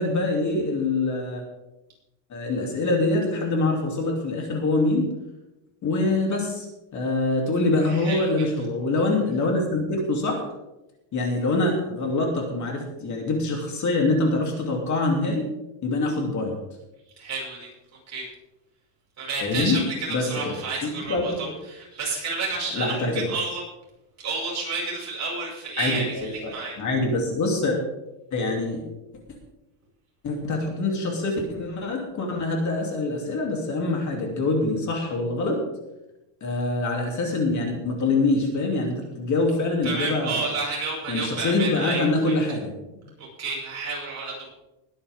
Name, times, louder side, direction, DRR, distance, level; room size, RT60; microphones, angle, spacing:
voice 1, 0.0-1.4 2.3-5.0 5.8-6.7 6.9-10.4 11.1-15.4 15.8-16.5 19.4-19.8 20.1-20.5 20.8-21.3 22.7-23.3 25.8-26.5 26.8-27.8 28.3-28.8 30.2-35.6 36.4-40.4 41.1-42.7, left 2 dB, 40° left, 1 dB, 3.0 m, -24 dB
voice 2, 7.9-8.3 17.2-17.7 18.1-18.3 19.2-23.6 24.2-26.8 39.8-42.3 43.2-44.5, right 3 dB, 35° right, -3 dB, 6.1 m, -31 dB
21.0 x 9.7 x 3.7 m, 0.95 s
cardioid pair, 155°, 44 cm